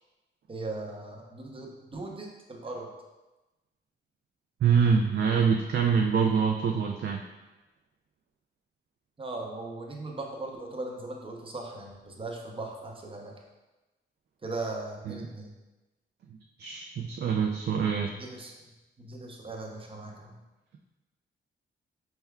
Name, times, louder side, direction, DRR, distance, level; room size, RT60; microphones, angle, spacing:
voice 1, 0.5-2.9 9.2-13.3 14.4-15.5 18.1-18.5 19.0-20.4, right 2 dB, 25° right, -1 dB, 0.8 m, -38 dB
voice 2, 4.6-7.2 15.1-15.2 16.6-18.1, right 6 dB, 55° right, 1 dB, 0.4 m, -25 dB
4.2 x 3.4 x 2.3 m, 1.1 s
cardioid pair, 80°, 21 cm